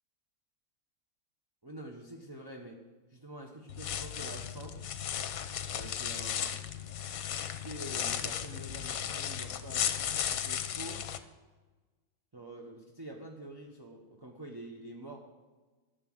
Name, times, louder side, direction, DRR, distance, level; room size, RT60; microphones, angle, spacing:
voice 1, 1.6-2.8 3.1-4.8 5.7-6.6 7.4-11.0 12.3-15.2, right 1 dB, 20° right, 0 dB, 0.9 m, -46 dB
sound 1, 3.7-11.2, left 9 dB, 65° left, 1.1 m, -35 dB
11.0 x 6.9 x 7.8 m, 1.3 s
omnidirectional pair, 1.6 m